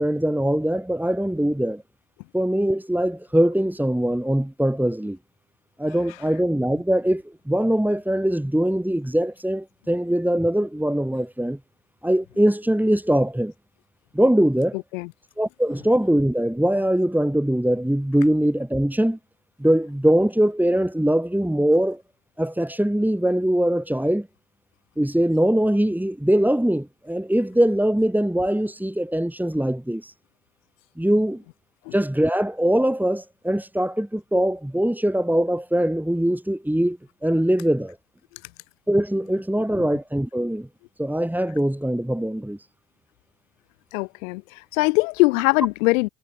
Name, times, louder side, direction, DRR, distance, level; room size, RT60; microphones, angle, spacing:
voice 1, 0.0-1.8 2.3-5.2 5.8-11.6 12.0-13.5 14.1-14.8 15.4-19.2 19.6-22.0 22.4-24.3 25.0-30.1 31.0-31.4 31.9-38.0 38.9-40.7 41.0-42.6, right 1 dB, 5° right, 5.9 m, -22 dB
voice 2, 43.9-46.1, left 25 dB, 75° left, 4.7 m, -21 dB
hypercardioid pair, 55°, 39 cm